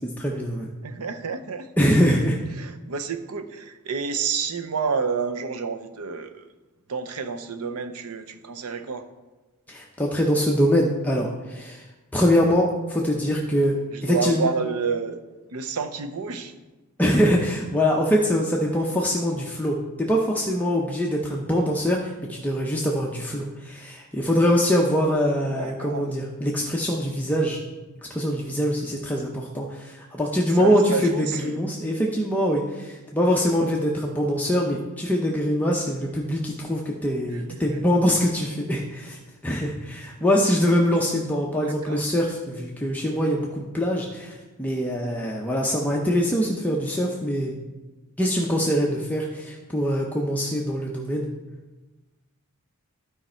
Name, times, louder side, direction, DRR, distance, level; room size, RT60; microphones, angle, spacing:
voice 1, 0.0-0.7 1.8-2.4 9.7-11.8 12.1-13.8 14.0-14.5 17.0-27.6 28.1-39.2 39.4-47.6 48.2-51.3, equal, 5° left, -2 dB, 0.7 m, -23 dB
voice 2, 0.8-1.7 2.5-6.5 6.9-9.1 13.9-15.2 15.5-16.5 25.6-26.1 30.5-31.6 37.3-37.8 41.6-42.1, right 5 dB, 85° right, 9 dB, 0.7 m, -29 dB
12.0 x 5.1 x 4.4 m, 1.2 s
head